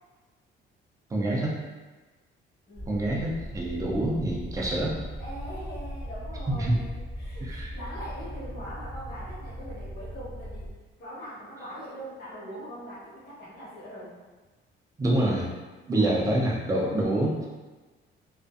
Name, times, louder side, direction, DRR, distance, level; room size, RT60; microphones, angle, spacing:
voice 1, 1.1-1.6 2.9-5.0 6.5-6.8 7.4-7.7 15.0-15.5 15.9-17.4, right 1 dB, 15° right, -3 dB, 0.4 m, -26 dB
voice 2, 2.7-3.0 5.2-10.7 11.0-14.2 15.9-16.2, equal, 50° left, -9 dB, 1.1 m, -42 dB
sound 1, 2.7-10.7, equal, 25° left, 0.7 m, -38 dB
2.5 x 2.3 x 2.3 m, 1.3 s
cardioid pair, 165°, 21 cm